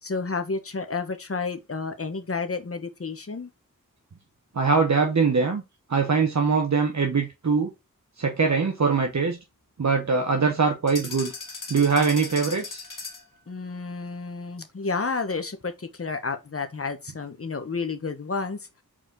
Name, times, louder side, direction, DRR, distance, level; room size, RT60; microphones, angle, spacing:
voice 1, 0.0-3.5 13.5-18.7, left 4 dB, 45° left, 1.1 m, -31 dB
voice 2, 4.5-5.6 5.9-7.7 8.2-9.4 9.8-11.3 11.7-12.8, right 5 dB, 55° right, 1.1 m, -22 dB
sound 1, 10.9-13.4, left 4 dB, 70° left, 1.8 m, -37 dB
4.9 x 4.3 x 4.6 m
wide cardioid pair, 70°, 33 cm